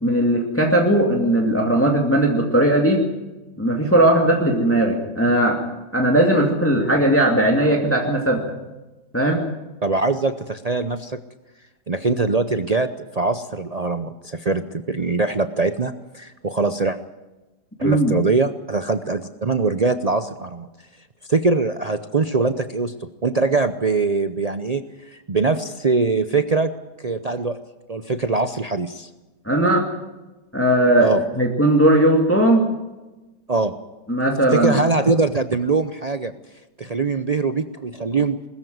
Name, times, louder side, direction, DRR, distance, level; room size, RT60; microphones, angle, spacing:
voice 1, 0.0-3.0 3.6-5.6 5.9-8.4 9.1-9.4 17.8-18.1 29.4-29.9 30.5-32.7 34.1-34.8, right 1 dB, 5° left, 1 dB, 2.4 m, -18 dB
voice 2, 9.8-11.2 11.9-17.0 17.8-20.7 21.3-26.7 27.0-27.6 27.9-29.1 31.0-31.2 33.5-33.7 34.5-36.3 36.8-38.4, right 3 dB, 75° right, 10 dB, 0.3 m, -22 dB
20.5 x 14.0 x 9.4 m, 1.1 s
omnidirectional pair, 1.9 m